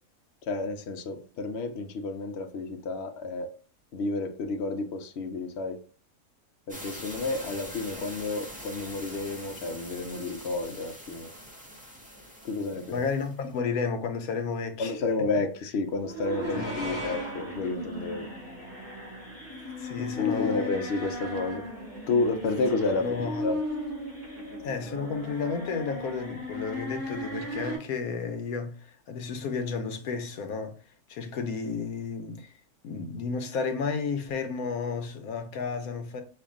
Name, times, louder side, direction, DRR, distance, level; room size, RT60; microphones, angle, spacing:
voice 1, 0.5-3.5 3.9-5.8 6.7-11.3 12.4-13.0 14.8-18.3 20.0-21.6 22.1-23.1 23.4-23.6, left 3 dB, 60° left, 0.7 m, -30 dB
sound 1, 6.7-13.6, equal, 5° right, 0.8 m, -44 dB
voice 2, 12.9-14.9 16.5-17.0 19.8-20.7 23.0-23.4 24.6-30.8 31.1-32.5 32.8-36.2, left 5 dB, 75° left, 1.1 m, -32 dB
sound 2, 16.0-27.8, left 1 dB, 30° right, 2.3 m, -36 dB
5.5 x 2.6 x 3.6 m
omnidirectional pair, 1.6 m